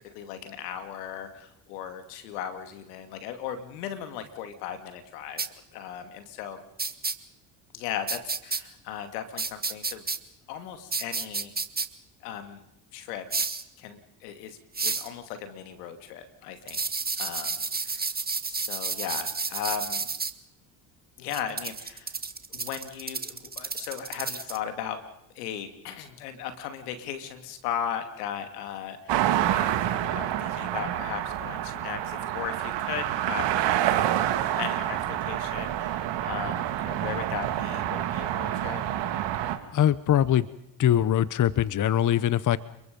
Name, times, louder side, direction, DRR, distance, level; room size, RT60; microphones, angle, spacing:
voice 1, 0.0-5.4 5.7-6.6 7.7-10.0 10.5-11.5 12.2-12.6 12.9-13.2 13.8-16.8 17.2-18.1 18.5-20.1 21.2-22.2 22.5-25.0 25.3-34.1 34.6-38.8, left 9 dB, 85° left, 8 dB, 2.6 m, -37 dB
sound 1, 5.4-5.5 6.8-7.1 8.1-8.6 9.4-10.2 10.9-11.9 13.3-13.6 14.7-15.1 16.7-20.3 21.3-24.6, right 4 dB, 20° right, 1.9 m, -31 dB
sound 2, 29.1-39.6, right 12 dB, 65° right, 2.5 m, -28 dB
voice 2, 39.7-40.5 40.8-42.6, left 11 dB, 40° left, 18 dB, 1.0 m, -22 dB
29.5 x 22.5 x 5.4 m, 0.86 s
hypercardioid pair, 65°, 46 cm